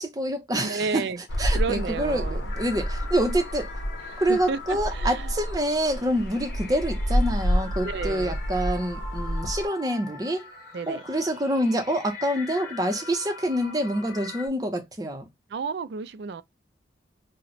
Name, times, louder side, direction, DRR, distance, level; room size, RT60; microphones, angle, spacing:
voice 1, 0.0-1.0 1.4-3.7 4.2-10.5 10.9-15.3, right 1 dB, 20° right, 0.6 m, -27 dB
voice 2, 0.6-1.2 1.5-2.5 4.1-5.3 7.8-8.4 10.7-11.0 15.5-16.4, right 5 dB, 65° right, 0.3 m, -32 dB
sound 1, 1.3-9.7, equal, 85° left, 0.7 m, -29 dB
sound 2, 2.5-14.5, left 4 dB, 50° left, 1.6 m, -42 dB
2.9 x 2.1 x 4.0 m
head